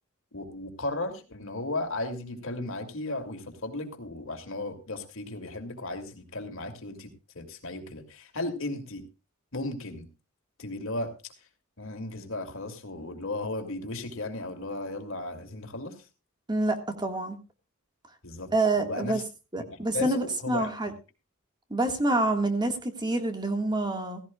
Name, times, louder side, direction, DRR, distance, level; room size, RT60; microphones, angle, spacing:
voice 1, 0.3-9.0 9.5-10.1 10.6-11.1 11.8-16.1 18.2-18.5 18.8-19.2 19.6-20.7, left 2 dB, 65° left, 2.6 m, -35 dB
voice 2, 16.5-17.4 18.5-19.2 19.5-20.9 21.7-24.2, right 2 dB, 20° right, 1.8 m, -27 dB
16.5 x 16.0 x 2.4 m
head